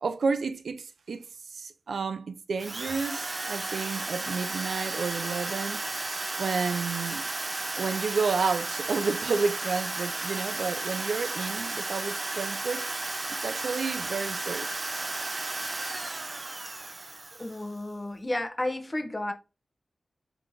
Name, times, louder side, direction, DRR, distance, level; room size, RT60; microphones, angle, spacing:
voice 1, 0.0-5.8 6.4-7.3 7.8-12.9 13.4-14.7, right 4 dB, 85° right, 0.4 m, -31 dB
Drill, 2.6-17.8, right 2 dB, 40° right, 0.5 m, -34 dB
voice 2, 17.4-19.3, left 1 dB, 20° left, 0.7 m, -32 dB
4.5 x 3.8 x 2.6 m
wide cardioid pair, 80°, 0 cm